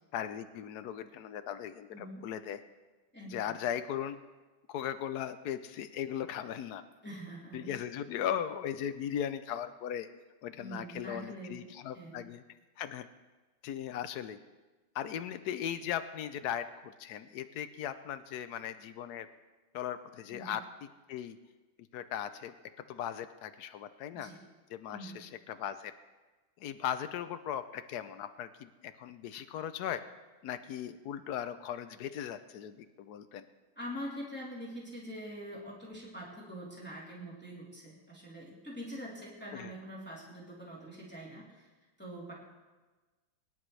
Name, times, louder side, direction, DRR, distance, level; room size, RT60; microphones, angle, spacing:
voice 1, 0.1-2.6 3.3-4.2 4.7-6.8 7.5-10.1 10.4-12.4 12.8-13.1 13.6-14.4 14.9-19.3 19.7-20.6 21.1-21.4 21.9-22.5 22.9-24.3 24.7-25.9 26.6-30.0 30.4-33.4 39.5-39.7, left 9 dB, 85° left, 10 dB, 0.8 m, -38 dB
voice 2, 1.9-2.2 3.1-3.6 7.0-7.7 10.6-11.6 11.9-12.2 20.3-20.6 24.1-24.4 24.9-25.2 33.7-41.7 42.0-42.3, equal, 5° left, -6 dB, 3.2 m, -44 dB
24.0 x 10.5 x 3.3 m, 1.2 s
omnidirectional pair, 2.4 m